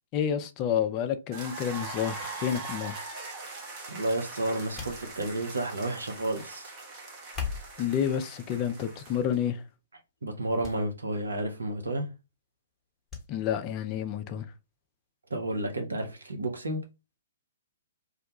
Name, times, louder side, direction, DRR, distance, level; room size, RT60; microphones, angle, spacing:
voice 1, 0.1-3.0 7.8-9.6 13.3-14.5, left 9 dB, 30° left, 0.3 m, -29 dB
sound 1, 1.3-9.4, right 3 dB, 30° right, 0.7 m, -41 dB
voice 2, 3.9-6.7 10.2-12.1 15.3-16.8, right 1 dB, 75° right, 0.7 m, -31 dB
sound 2, 4.8-5.6 7.2-7.9 8.7-9.1 9.5-9.6 10.6-10.8 11.1-11.2 13.1-13.3 13.6-13.7, left 6 dB, 10° left, 0.9 m, -38 dB
2.3 x 2.1 x 2.8 m
figure-of-eight pair, 120°, 0 cm